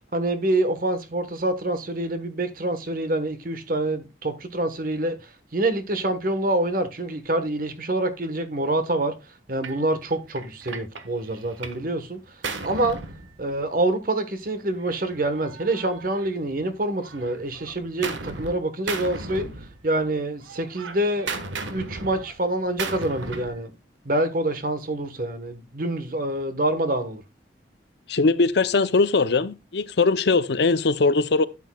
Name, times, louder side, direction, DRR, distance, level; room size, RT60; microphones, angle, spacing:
voice 1, 0.1-9.1 9.5-12.2 12.6-13.0 13.4-19.5 19.8-21.3 21.7-23.7 24.0-27.2, right 1 dB, 50° right, 1.1 m, -26 dB
Gunshot gunfire, 9.6-9.8 10.4-11.9 12.1-13.9 14.8-16.6 17.0-18.6 18.9-20.1 20.4-23.6, right 4 dB, 85° right, 1.2 m, -36 dB
voice 2, 28.1-31.5, left 3 dB, 65° left, 0.6 m, -20 dB
12.0 x 8.5 x 2.2 m
head